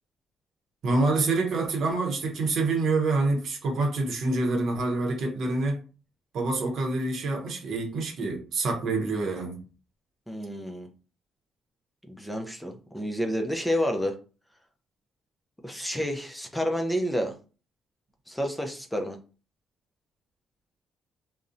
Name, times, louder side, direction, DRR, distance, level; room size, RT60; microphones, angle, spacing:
voice 1, 0.8-5.8 6.3-9.6, right 3 dB, 65° right, 0.7 m, -26 dB
voice 2, 10.3-10.9 12.1-14.2 15.6-17.3 18.3-19.2, equal, 5° left, 0.4 m, -29 dB
2.5 x 2.0 x 2.5 m
cardioid pair, 90°, 0 cm